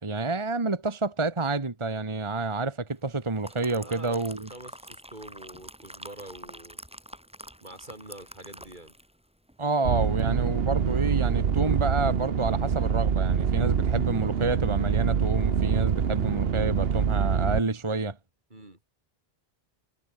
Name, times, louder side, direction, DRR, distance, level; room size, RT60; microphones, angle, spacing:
voice 1, 0.0-4.5 9.6-18.2, right 3 dB, 30° right, 1.5 m, -29 dB
sound 1, 3.1-9.2 9.5-9.7, equal, 5° right, 3.0 m, -46 dB
voice 2, 3.8-4.2 4.5-6.8 7.6-8.9 18.5-18.8, right 1 dB, 50° right, 5.4 m, -45 dB
sound 2, 9.8-17.6, right 7 dB, 70° right, 1.3 m, -25 dB
omnidirectional pair, 1.0 m